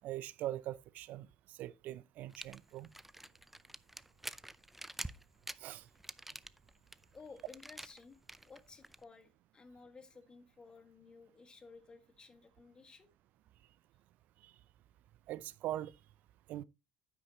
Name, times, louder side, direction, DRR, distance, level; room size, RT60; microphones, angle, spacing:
voice 1, 0.0-2.9 5.6-5.8 14.4-14.5 15.3-15.9 16.5-16.6, right 13 dB, 60° right, 0.4 m, -42 dB
sound 1, 2.3-9.0, right 1 dB, 5° right, 0.5 m, -48 dB
voice 2, 7.1-8.2 8.4-13.1, left 4 dB, 30° left, 1.7 m, -56 dB
9.8 x 8.7 x 2.9 m
hypercardioid pair, 75°, 3 cm